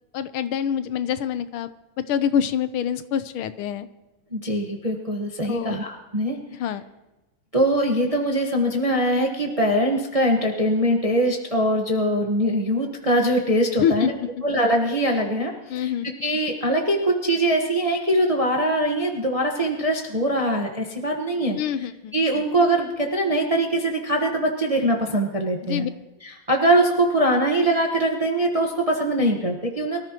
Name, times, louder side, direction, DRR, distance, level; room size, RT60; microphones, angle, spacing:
voice 1, 0.1-1.7 2.1-3.9 5.4-5.8 6.6-6.8 13.8-14.1 15.7-16.1 21.6-22.1 25.6-25.9, left 8 dB, 80° left, 12 dB, 1.6 m, -25 dB
voice 2, 4.3-6.4 7.5-14.1 14.4-15.9 16.2-21.6 22.1-25.9 26.2-30.0, right 1 dB, 20° right, 1 dB, 1.0 m, -22 dB
24.0 x 14.0 x 3.0 m, 1.1 s
omnidirectional pair, 2.3 m